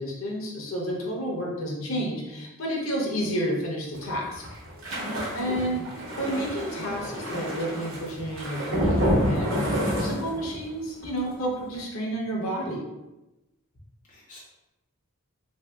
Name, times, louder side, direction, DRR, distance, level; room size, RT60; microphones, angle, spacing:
voice 1, 0.0-4.4 5.3-5.8 6.2-12.8, equal, 70° left, -1 dB, 0.7 m, -30 dB
sound 1, 3.9-10.7 11.0-11.3 11.6-11.8, equal, 60° right, 0.9 m, -29 dB
voice 2, 5.5-6.0 14.1-14.4, left 1 dB, 35° left, -5 dB, 0.5 m, -44 dB
3.3 x 2.6 x 2.3 m, 1.0 s
head